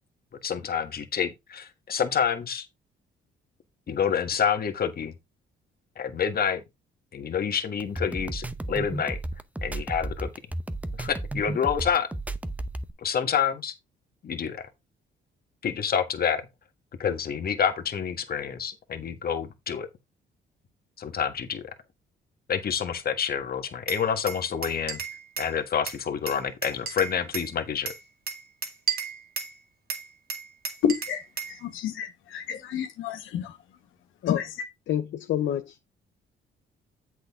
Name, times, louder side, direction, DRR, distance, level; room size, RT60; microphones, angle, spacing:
voice 1, 0.4-2.7 3.9-5.1 6.0-6.6 7.1-9.2 9.6-10.3 11.0-12.1 13.0-13.7 14.2-14.7 15.6-16.5 17.0-19.9 21.0-21.6 22.5-25.0 25.4-27.9, left 7 dB, 50° left, 1.6 m, -28 dB
sound 1, 7.8-12.9, right 2 dB, 5° right, 0.8 m, -33 dB
Glass, 23.9-25.5 25.9-27.5 27.9-29.6 29.9-31.6, right 6 dB, 50° right, 2.2 m, -34 dB
voice 2, 30.8-33.6 34.3-34.5, left 8 dB, 90° left, 1.5 m, -30 dB
voice 3, 34.9-35.8, left 11 dB, 70° left, 0.7 m, -28 dB
8.0 x 6.3 x 3.6 m
cardioid pair, 90°, 20 cm